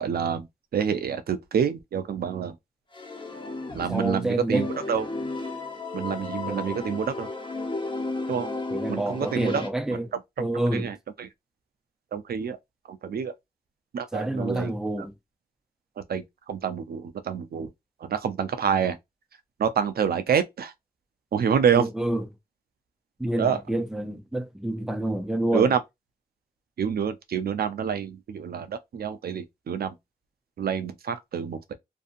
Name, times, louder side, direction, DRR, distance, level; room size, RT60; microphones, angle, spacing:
voice 1, 0.0-2.6 3.7-5.1 5.9-7.3 8.3-8.5 8.9-9.6 10.1-11.3 12.1-12.6 12.9-13.3 13.9-14.7 16.0-17.7 18.0-19.0 19.6-20.7 21.3-21.9 23.4-23.6 25.5-25.8 26.8-29.9 30.6-31.7, right 7 dB, 90° right, 0.5 m, -27 dB
sound 1, 2.9-4.2 4.5-9.7, left 3 dB, 30° left, 0.9 m, -33 dB
voice 2, 3.9-4.7 6.5-6.9 8.7-10.1 10.4-10.9 14.1-15.1 21.7-22.3 23.2-25.7, right 1 dB, 5° right, 0.5 m, -28 dB
2.7 x 2.6 x 2.4 m
wide cardioid pair, 100°, 15 cm